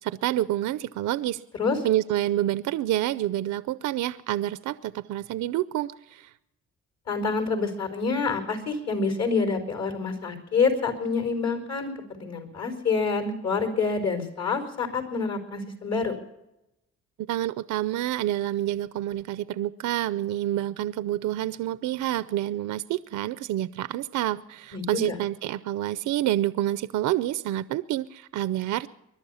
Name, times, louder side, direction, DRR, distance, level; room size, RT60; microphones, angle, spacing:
voice 1, 0.0-1.4 1.8-6.3 17.3-28.9, right 13 dB, 75° right, 0.6 m, -28 dB
voice 2, 7.1-16.1 24.7-25.2, left 4 dB, 60° left, 4.7 m, -27 dB
21.5 x 11.5 x 5.6 m
cardioid pair, 90°, 30 cm